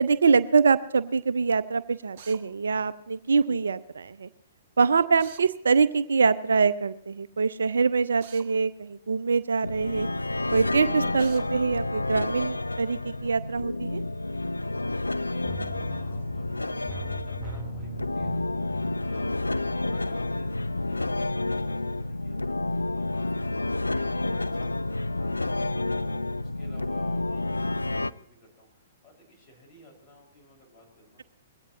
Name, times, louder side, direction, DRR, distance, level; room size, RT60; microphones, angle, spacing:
voice 1, 0.0-4.3 4.8-10.1 10.5-14.0, right 5 dB, 70° right, 15 dB, 0.5 m, -24 dB
Drill, 2.2-2.4 5.2-5.5 8.2-8.5 11.2-11.5, right 8 dB, 40° right, 1.2 m, -46 dB
sound 1, 9.6-28.1, left 2 dB, 85° left, 0.4 m, -30 dB
voice 2, 15.1-31.2, left 1 dB, 25° left, -2 dB, 5.9 m, -55 dB
sound 2, 15.5-20.2 20.5-20.6, equal, 5° right, 1.5 m, -40 dB
21.0 x 16.5 x 3.1 m, 0.75 s
figure-of-eight pair, 115°, 0 cm